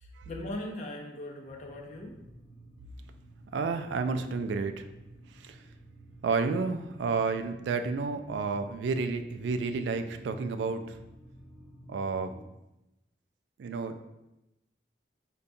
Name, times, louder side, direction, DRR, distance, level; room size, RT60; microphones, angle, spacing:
voice 1, 0.0-2.2, left 1 dB, 40° left, 0 dB, 0.5 m, -39 dB
sound 1, 1.4-12.4, right 1 dB, 15° right, 1.0 m, -52 dB
voice 2, 3.5-4.9 5.3-5.6 6.2-11.0 11.9-12.4 13.6-14.0, right 4 dB, 85° right, 8 dB, 0.3 m, -31 dB
5.2 x 2.2 x 2.6 m, 0.94 s
head